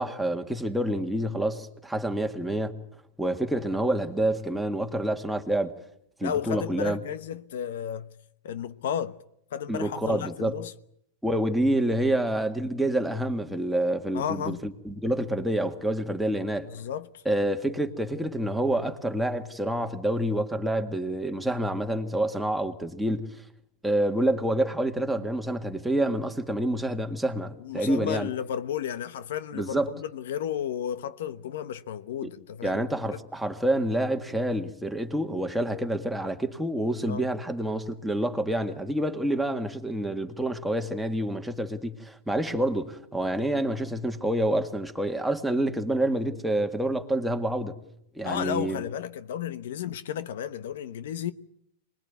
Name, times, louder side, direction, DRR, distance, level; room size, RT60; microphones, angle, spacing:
voice 1, 0.0-2.7 3.2-5.7 6.2-7.0 9.7-10.5 11.2-16.7 17.3-23.2 23.8-28.3 29.5-29.9 32.2-32.3 32.6-47.8 48.2-48.8, right 1 dB, ahead, 1.9 m, -27 dB
voice 2, 6.2-8.1 8.4-9.2 9.5-10.7 14.1-14.6 16.7-17.2 27.6-33.2 37.1-37.3 48.2-51.3, left 9 dB, 75° left, 1.1 m, -33 dB
26.0 x 20.5 x 9.4 m
supercardioid pair, 145°, 0 cm